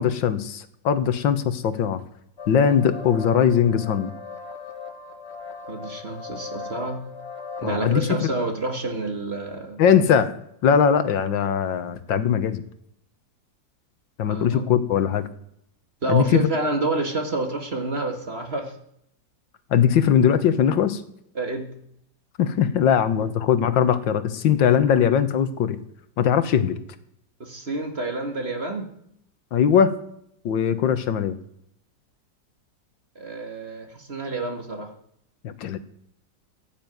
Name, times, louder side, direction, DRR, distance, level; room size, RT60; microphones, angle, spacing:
voice 1, 0.0-2.0 2.5-4.1 7.6-8.3 9.8-10.3 10.6-12.6 14.2-15.3 16.1-16.5 19.7-21.0 22.4-25.8 26.2-26.8 29.5-29.9 30.5-31.4 35.4-35.8, left 8 dB, 90° left, 12 dB, 1.8 m, -20 dB
sound 1, 2.4-7.7, left 5 dB, 40° left, 1.6 m, -38 dB
voice 2, 5.7-7.1 7.6-9.8 14.2-14.6 16.0-18.8 21.4-21.8 23.2-23.3 27.4-28.9 33.2-34.9, right 2 dB, 35° right, 4 dB, 2.0 m, -29 dB
15.5 x 7.2 x 9.2 m, 0.75 s
omnidirectional pair, 2.0 m